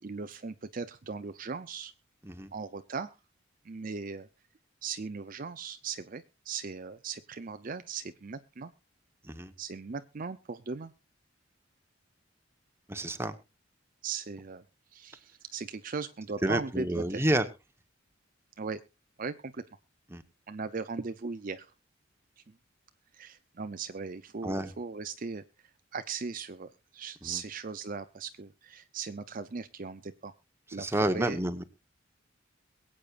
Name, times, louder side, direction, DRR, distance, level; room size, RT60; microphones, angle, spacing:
voice 1, 0.0-1.9 2.5-3.2 3.6-4.3 4.8-8.7 9.6-10.9 14.0-14.6 14.9-17.2 18.6-18.8 19.2-19.6 20.5-21.7 22.5-22.6 23.1-25.4 25.9-30.3 30.7-31.4, right 5 dB, 45° right, 10 dB, 0.6 m, -38 dB
voice 2, 12.9-13.4 16.4-17.4 20.1-20.2 24.4-24.7 27.2-27.4 30.8-31.6, right 1 dB, 15° right, 9 dB, 1.1 m, -29 dB
22.5 x 8.6 x 2.5 m, 0.27 s
head